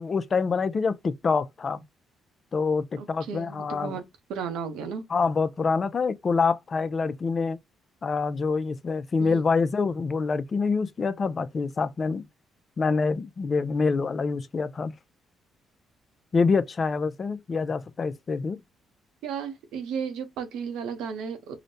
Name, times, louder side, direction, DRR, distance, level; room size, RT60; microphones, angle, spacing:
voice 1, 0.0-1.8 2.5-4.0 5.1-7.6 8.0-12.3 12.8-14.9 16.3-18.6, left 4 dB, 40° left, 0.4 m, -26 dB
voice 2, 3.0-4.0 4.3-5.0 9.2-9.4 19.2-21.6, right 6 dB, 90° right, 0.8 m, -34 dB
4.9 x 2.1 x 2.7 m
cardioid pair, 90°, 0 cm